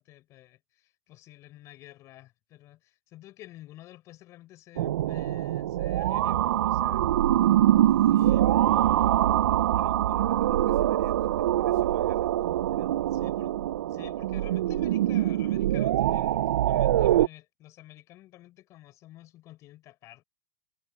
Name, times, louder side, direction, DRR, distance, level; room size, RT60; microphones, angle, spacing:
voice 1, 0.0-7.1 8.1-8.4 13.1-13.6 13.8-20.2, left 15 dB, 30° left, 6.2 m, -51 dB
sound 1, 4.8-17.3, right 13 dB, 90° right, 0.4 m, -24 dB
voice 2, 7.8-13.4, right 19 dB, 55° right, 7.3 m, -52 dB
supercardioid pair, 160°, 10 cm